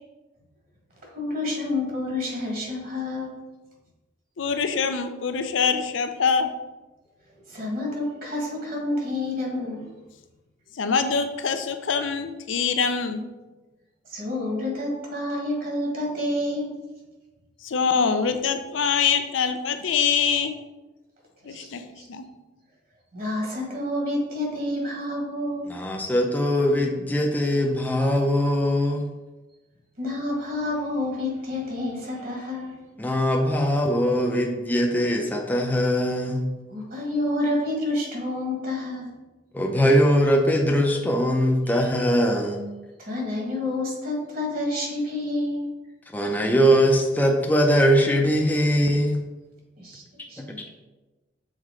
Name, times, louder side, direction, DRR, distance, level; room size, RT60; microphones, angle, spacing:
voice 1, 1.0-3.3 7.5-9.8 14.1-16.7 21.4-21.7 22.0-22.1 23.1-25.7 30.0-32.7 36.7-39.1 41.6-42.1 43.0-45.7 49.8-50.0 50.3-50.6, left 1 dB, 50° right, -1 dB, 1.7 m, -29 dB
voice 2, 4.4-6.5 10.7-13.2 17.6-20.6 21.4-21.8 22.1-22.2, left 6 dB, 85° left, 8 dB, 0.5 m, -24 dB
voice 3, 25.7-29.1 33.0-36.4 39.5-42.6 46.1-49.2 50.4-50.5, equal, 10° left, 0 dB, 0.5 m, -21 dB
6.5 x 4.2 x 3.7 m, 1.1 s
head